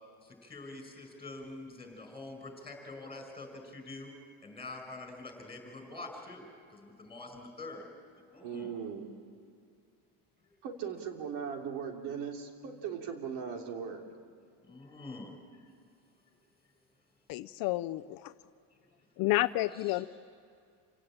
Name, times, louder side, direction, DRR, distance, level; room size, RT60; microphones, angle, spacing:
voice 1, 0.2-4.1 4.4-6.5 6.7-7.9 8.3-8.7 14.7-15.3 19.7-20.1, left 2 dB, 15° left, 4 dB, 5.3 m, -45 dB
voice 2, 8.4-9.1 10.6-14.0, right 7 dB, 90° right, 3 dB, 3.3 m, -38 dB
voice 3, 17.3-18.3 19.2-20.1, left 18 dB, 60° left, 12 dB, 0.6 m, -30 dB
28.0 x 17.5 x 8.8 m, 2.3 s
cardioid pair, 160°, 40 cm